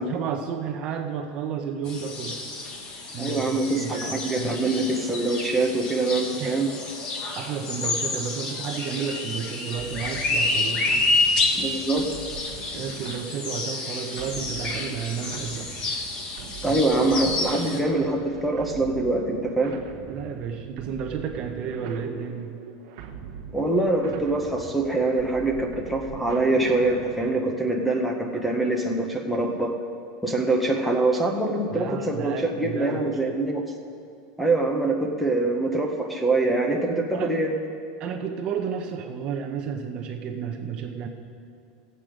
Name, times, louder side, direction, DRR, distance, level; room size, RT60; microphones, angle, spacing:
voice 1, 0.0-2.4 3.1-4.6 6.4-6.6 7.4-10.9 12.7-15.7 16.6-16.8 20.1-22.6 31.7-33.2 37.1-37.3 38.0-41.1, right 7 dB, 30° right, 5 dB, 0.7 m, -32 dB
sound 1, 1.9-17.8, left 3 dB, 25° left, 1.0 m, -29 dB
voice 2, 3.2-6.7 11.5-12.1 16.6-19.8 23.5-29.8 30.2-33.6 34.4-37.6, right 2 dB, ahead, 2 dB, 0.7 m, -24 dB
sound 2, 9.8-27.4, right 7 dB, 50° right, 1.1 m, -41 dB
16.5 x 7.8 x 5.1 m, 2.5 s
supercardioid pair, 175°, 3 cm